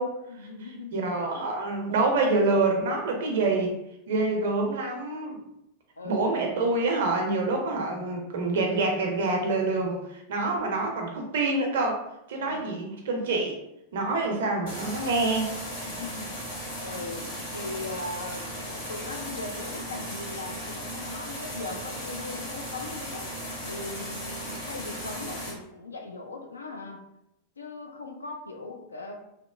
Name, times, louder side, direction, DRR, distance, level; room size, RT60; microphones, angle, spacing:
voice 1, 0.3-1.0 6.0-6.7 12.4-12.9 15.9-16.4 16.8-23.3 23.6-27.0 27.6-29.2, left 2 dB, 75° left, 3 dB, 0.4 m, -39 dB
voice 2, 0.9-3.7 4.1-5.4 6.0-12.0 12.3-13.6 13.9-15.5, right 3 dB, 60° right, 2 dB, 0.5 m, -26 dB
sound 1, 14.7-25.5, equal, 60° left, 1.2 m, -36 dB
2.8 x 2.0 x 2.3 m, 0.82 s
figure-of-eight pair, 90°, 0 cm